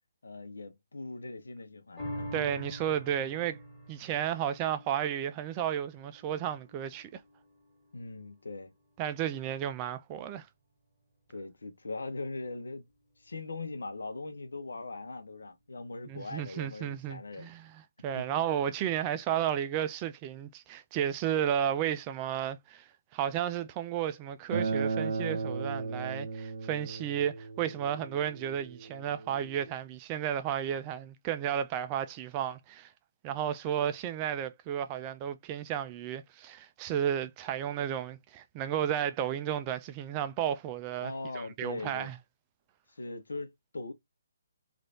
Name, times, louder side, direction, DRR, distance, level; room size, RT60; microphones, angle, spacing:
voice 1, 0.2-2.4 7.9-8.7 11.3-12.9 13.2-17.5 18.1-18.4 41.0-42.1 42.9-43.9, left 3 dB, 75° left, 0.8 m, -40 dB
sound 1, 2.0-8.6 9.1-9.2, equal, 15° left, 1.9 m, -45 dB
voice 2, 2.3-3.6 3.9-7.2 9.0-10.5 16.1-17.7 18.0-22.9 23.1-32.9 33.2-42.2, right 10 dB, 25° right, 0.4 m, -33 dB
Acoustic guitar, 24.5-29.7, right 4 dB, 70° right, 0.8 m, -35 dB
3.2 x 2.5 x 2.7 m
figure-of-eight pair, 140°, 0 cm